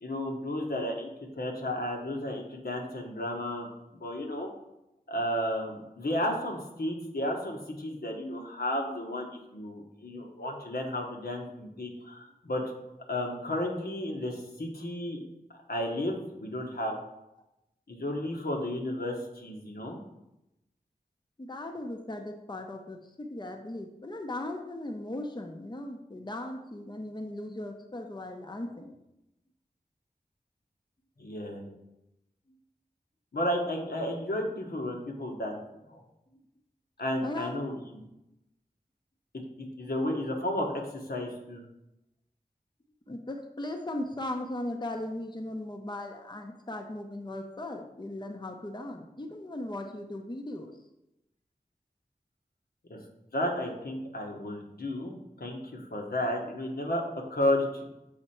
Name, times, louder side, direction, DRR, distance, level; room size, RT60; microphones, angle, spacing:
voice 1, 0.0-1.1 1.4-3.7 4.0-4.5 5.1-9.3 9.5-12.6 13.1-15.2 15.7-17.0 17.9-20.0 31.2-31.7 33.3-35.6 35.9-36.0 37.0-38.0 39.3-39.4 39.8-41.6 52.9-53.0 53.3-57.0 57.3-57.8, left 1 dB, 80° left, 0 dB, 1.3 m, -33 dB
voice 2, 21.4-29.0 36.3-36.4 37.2-37.6 43.1-50.7, left 1 dB, 30° left, 4 dB, 0.7 m, -38 dB
7.1 x 4.3 x 4.4 m, 0.89 s
wide cardioid pair, 55°, 16 cm